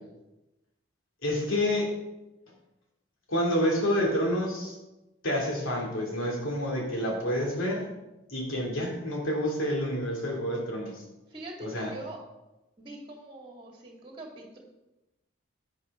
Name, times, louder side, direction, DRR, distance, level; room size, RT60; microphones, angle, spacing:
voice 1, 1.2-2.0 3.3-4.8 5.2-7.9 8.3-11.0 11.6-11.9, equal, 75° left, 0 dB, 2.6 m, -28 dB
voice 2, 11.3-12.2 12.8-14.6, right 1 dB, 25° right, 0 dB, 2.1 m, -43 dB
10.5 x 9.4 x 3.7 m, 0.99 s
head